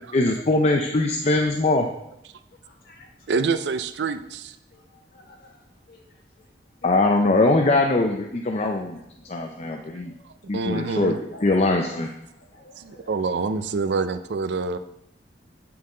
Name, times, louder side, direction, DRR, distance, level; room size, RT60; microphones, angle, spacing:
voice 1, 0.1-1.9 6.8-9.0 9.3-10.1 10.5-12.1, left 2 dB, 40° left, 2 dB, 0.5 m, -21 dB
voice 2, 2.6-3.1 4.7-5.6 5.9-6.5 6.8-6.9 9.6-10.2 11.3-13.1 13.5-13.6, left 1 dB, 60° left, -1 dB, 1.7 m, -50 dB
voice 3, 3.3-4.6 9.9-11.2 12.8-14.8, right 4 dB, 70° right, 11 dB, 0.4 m, -27 dB
8.6 x 5.5 x 3.8 m, 0.82 s
head